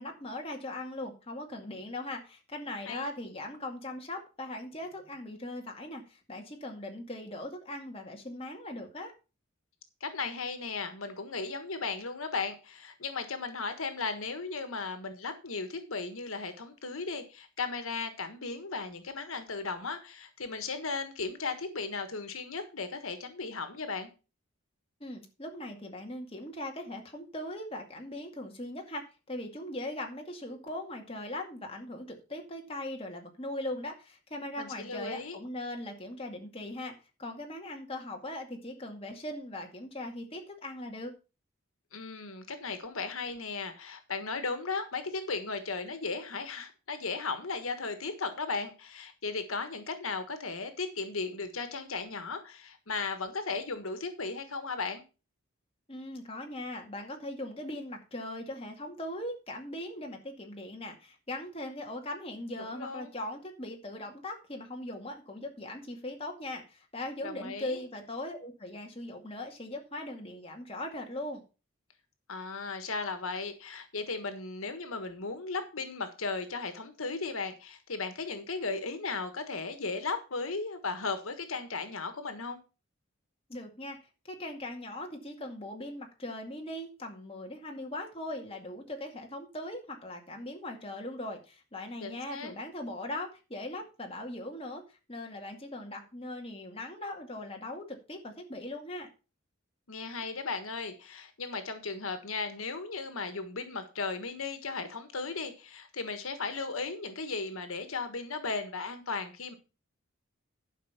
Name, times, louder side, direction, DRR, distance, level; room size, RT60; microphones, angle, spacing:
voice 1, 0.0-9.1 25.0-36.9 37.2-41.1 55.9-71.4 83.5-99.1, left 1 dB, 25° left, 2 dB, 2.2 m, -40 dB
voice 2, 10.0-24.1 34.6-35.4 41.9-55.0 62.7-63.1 67.2-67.8 72.3-82.6 92.0-92.5 99.9-109.5, left 4 dB, 85° left, 9 dB, 1.5 m, -36 dB
11.5 x 5.4 x 5.7 m, 0.32 s
head